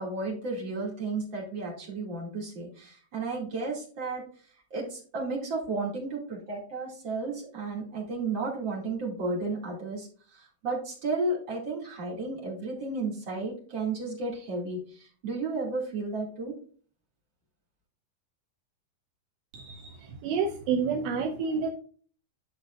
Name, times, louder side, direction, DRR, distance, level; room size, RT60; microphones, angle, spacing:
voice 1, 0.0-4.2 4.7-16.5, right 3 dB, 40° right, -3 dB, 1.9 m, -33 dB
voice 2, 19.5-19.9 20.2-21.7, right 5 dB, 80° right, 5 dB, 2.6 m, -29 dB
10.5 x 6.4 x 2.4 m, 0.44 s
omnidirectional pair, 5.5 m